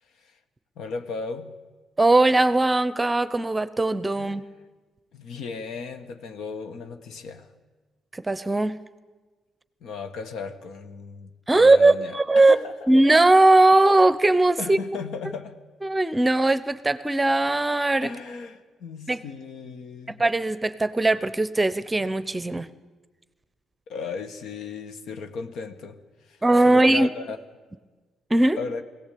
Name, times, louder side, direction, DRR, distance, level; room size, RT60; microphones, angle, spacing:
voice 1, 0.8-1.5 4.2-4.4 5.1-7.5 9.8-12.7 14.6-15.6 18.0-20.2 23.9-26.0 26.3-26.4 26.6-27.5 28.6-28.8, left 4 dB, 75° left, 1.6 m, -35 dB
voice 2, 2.0-4.4 8.1-8.8 11.5-12.6 12.9-14.8 15.8-18.1 19.1-19.2 20.1-22.7 26.4-27.1 28.3-28.6, right 2 dB, 15° right, 0.9 m, -19 dB
20.5 x 17.0 x 8.6 m
cardioid pair, 90°, 0 cm